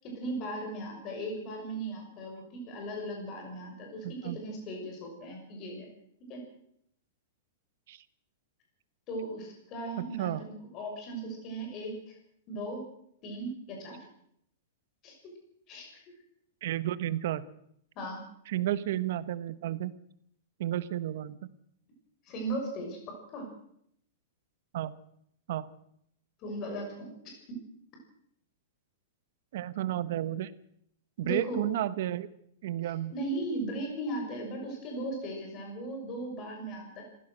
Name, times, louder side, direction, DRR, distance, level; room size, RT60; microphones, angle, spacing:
voice 1, 0.0-5.9 6.3-6.4 9.1-12.2 12.5-12.8 13.2-14.0 15.0-15.3 15.7-15.9 17.9-18.2 22.2-23.0 23.3-23.5 26.4-27.1 31.2-31.6 32.8-37.0, right 1 dB, 25° left, 2 dB, 6.1 m, -37 dB
voice 2, 4.0-4.4 7.9-8.0 10.0-10.4 16.6-17.4 18.5-19.9 20.6-21.5 24.7-24.9 25.5-25.7 29.5-30.5 31.2-32.3 32.6-33.1, right 13 dB, 50° right, 15 dB, 1.2 m, -32 dB
26.5 x 15.5 x 6.4 m, 0.72 s
supercardioid pair, 175°, 0 cm